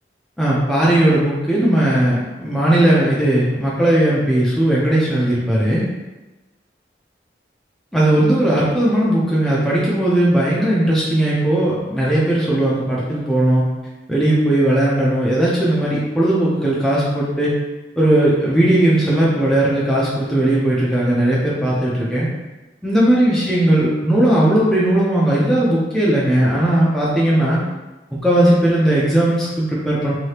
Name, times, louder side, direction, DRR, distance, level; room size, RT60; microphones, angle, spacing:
voice 1, 0.4-5.8 7.9-13.6 14.1-17.5 18.0-22.3 22.8-27.6 28.1-30.1, right 1 dB, ahead, -7 dB, 0.5 m, -17 dB
2.8 x 2.7 x 3.2 m, 1.1 s
head